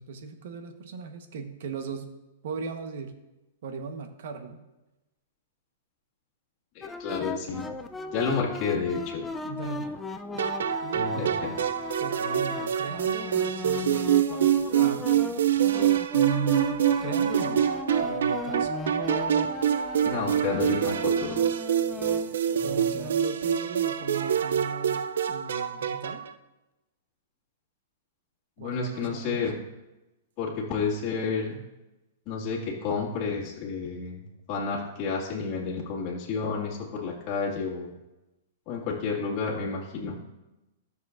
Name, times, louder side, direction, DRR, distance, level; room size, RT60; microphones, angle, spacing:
voice 1, 0.0-2.1 2.4-3.2 3.6-4.6 9.4-9.9 10.3-11.6 12.0-15.1 16.1-17.6 18.0-18.7 20.0-20.7 22.6-26.2 28.6-29.5, right 5 dB, 65° right, 6 dB, 1.1 m, -37 dB
voice 2, 6.7-7.6 8.1-9.3 10.9-11.6 20.0-21.4 28.6-29.6 30.4-31.6 32.3-34.2 34.5-38.0 38.7-40.2, left 5 dB, 35° left, -4 dB, 2.0 m, -30 dB
sound 1, 6.8-23.1, left 4 dB, 10° left, 0.4 m, -37 dB
sound 2, 10.4-26.3, right 9 dB, 85° right, 0.5 m, -26 dB
13.5 x 6.7 x 2.5 m, 1.0 s
hypercardioid pair, 145°, 0 cm